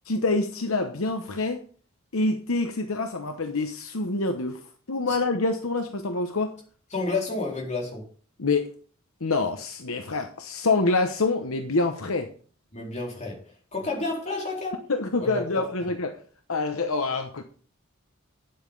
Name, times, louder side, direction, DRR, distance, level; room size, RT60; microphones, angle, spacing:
voice 1, 0.1-1.6 2.1-4.6 4.9-6.6 8.4-8.7 9.2-12.3 14.9-16.2 16.5-17.4, left 3 dB, 70° left, 6 dB, 1.0 m, -26 dB
voice 2, 6.9-8.1 12.7-14.8 15.2-15.9, left 3 dB, 30° left, -2 dB, 4.0 m, -31 dB
9.9 x 7.9 x 5.4 m, 0.43 s
head